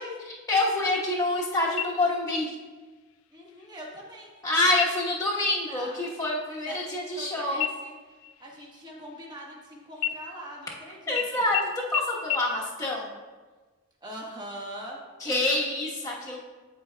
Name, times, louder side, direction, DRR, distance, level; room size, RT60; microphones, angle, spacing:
voice 1, 0.3-2.5 4.4-7.7 11.1-13.1 15.2-16.4, left 2 dB, 15° left, -6 dB, 1.1 m, -27 dB
sound 1, 1.8-2.4 2.8-2.9 3.5-4.0 4.7-5.2 5.6-5.9 6.2-7.3 7.6-9.6 10.0-10.8 11.2-11.3 11.5-11.6 11.9-12.0 12.3-12.4, left 11 dB, 85° left, 0.4 m, -33 dB
voice 2, 3.3-4.4 5.3-6.0 6.6-7.9 8.4-11.5 14.0-15.0, equal, 20° right, -3 dB, 1.3 m, -42 dB
12.0 x 4.7 x 2.2 m, 1.3 s
head